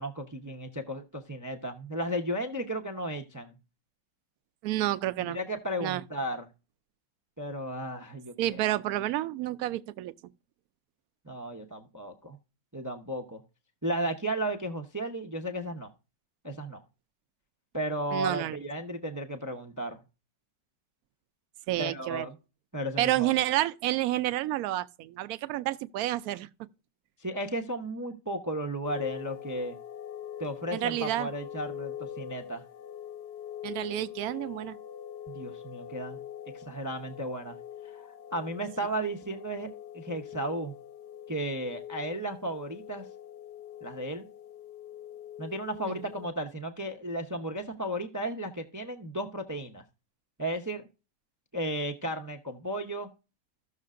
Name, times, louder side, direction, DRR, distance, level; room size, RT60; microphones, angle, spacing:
voice 1, 0.0-3.6 5.2-6.5 7.4-8.6 11.3-12.4 12.7-13.4 13.8-15.9 16.4-16.8 17.7-20.0 21.8-22.4 22.7-23.3 27.2-29.8 30.4-32.6 35.3-36.2 36.5-37.6 37.8-40.7 41.3-43.1 43.8-44.3 45.4-49.8 50.4-50.8 51.5-53.1, right 1 dB, 25° right, 0.4 m, -34 dB
voice 2, 4.6-5.4 5.8-6.0 8.4-10.1 18.1-18.6 21.7-22.3 23.0-26.5 30.7-31.3 33.6-34.8 45.9-46.0, right 15 dB, 70° right, 0.9 m, -29 dB
sound 1, 28.8-46.3, left 10 dB, 50° left, 0.8 m, -43 dB
15.0 x 6.6 x 2.5 m
omnidirectional pair, 1.9 m